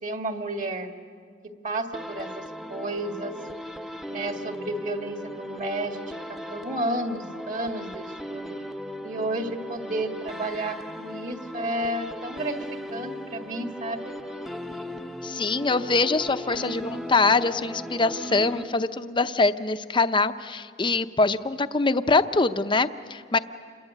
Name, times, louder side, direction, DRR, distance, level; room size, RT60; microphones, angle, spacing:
voice 1, 0.0-0.9 1.4-3.3 4.1-8.6 9.0-12.6 12.9-14.1, right 1 dB, 45° right, 4 dB, 2.0 m, -32 dB
sound 1, 1.9-19.1, equal, ahead, 0.8 m, -37 dB
voice 2, 15.2-23.4, left 3 dB, 25° left, 10 dB, 0.7 m, -23 dB
28.0 x 22.0 x 9.2 m, 2.2 s
head